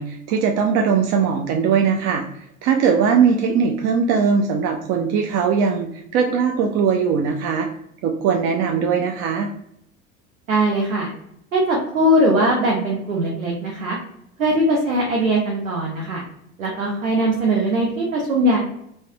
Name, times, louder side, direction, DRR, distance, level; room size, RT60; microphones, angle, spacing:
voice 1, 0.0-2.2 2.6-7.7 8.0-9.5, right 6 dB, 40° right, 3 dB, 0.4 m, -20 dB
voice 2, 10.5-11.1 11.5-14.0 14.4-16.2 16.6-18.6, right 1 dB, 90° right, -2 dB, 0.7 m, -20 dB
3.1 x 2.1 x 2.6 m, 0.74 s
hypercardioid pair, 75°, 40 cm